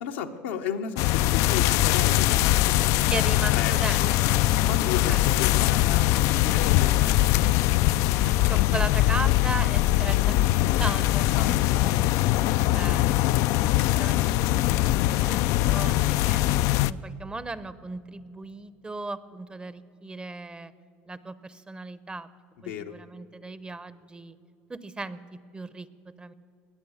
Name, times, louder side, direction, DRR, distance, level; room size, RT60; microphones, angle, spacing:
voice 1, 0.0-4.1 4.6-6.1 6.3-7.5 11.3-12.0 22.7-23.0, left 8 dB, 85° left, 4 dB, 1.0 m, -34 dB
sound 1, 1.0-16.9, left 15 dB, 65° left, 0.3 m, -22 dB
voice 2, 3.1-5.2 8.4-12.1 12.7-16.4 16.9-20.7 21.1-22.3 22.6-24.4 24.7-26.3, right 3 dB, 15° right, 16 dB, 0.7 m, -37 dB
19.5 x 8.6 x 7.0 m, 2.6 s
supercardioid pair, 85°, 6 cm